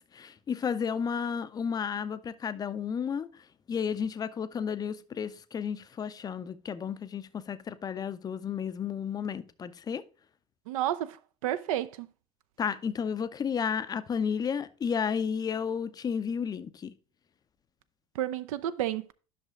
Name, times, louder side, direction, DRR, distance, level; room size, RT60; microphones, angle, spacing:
voice 1, 0.1-3.3 3.7-10.0 12.6-16.9, left 7 dB, 20° left, 0.5 m, -32 dB
voice 2, 10.7-11.2 11.4-12.1 18.2-19.1, right 12 dB, 60° right, 0.4 m, -31 dB
11.0 x 6.2 x 2.4 m
figure-of-eight pair, 75°, 20 cm